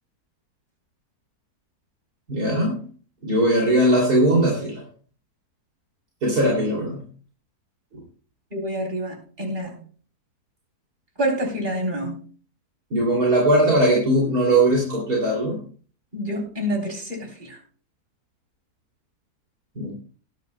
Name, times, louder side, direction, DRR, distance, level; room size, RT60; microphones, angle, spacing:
voice 1, 2.3-2.8 3.2-4.8 6.2-7.0 12.9-15.6 19.8-19.9, right 1 dB, 75° right, -2 dB, 3.4 m, -19 dB
voice 2, 8.5-9.8 11.2-12.2 16.1-17.6, equal, 30° right, 0 dB, 3.7 m, -27 dB
19.0 x 10.5 x 2.2 m, 0.42 s
omnidirectional pair, 1.7 m